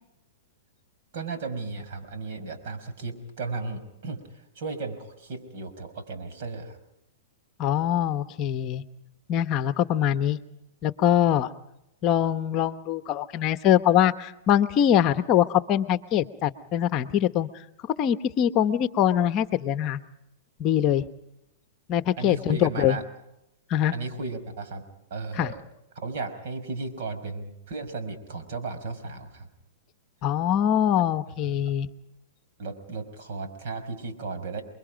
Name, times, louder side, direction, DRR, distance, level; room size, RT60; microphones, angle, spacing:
voice 1, 1.1-6.8 22.2-23.0 23.9-24.8 25.1-25.6 26.0-29.5 31.4-31.7 32.6-34.6, right 3 dB, 60° right, 8 dB, 5.4 m, -35 dB
voice 2, 7.6-8.8 9.3-10.4 10.8-11.5 12.0-17.5 18.0-20.0 20.6-21.1 21.9-23.0 23.7-23.9 25.4-25.5 30.2-31.9, left 10 dB, 35° left, 11 dB, 1.0 m, -23 dB
29.5 x 22.5 x 5.2 m, 0.85 s
hypercardioid pair, 135°, 0 cm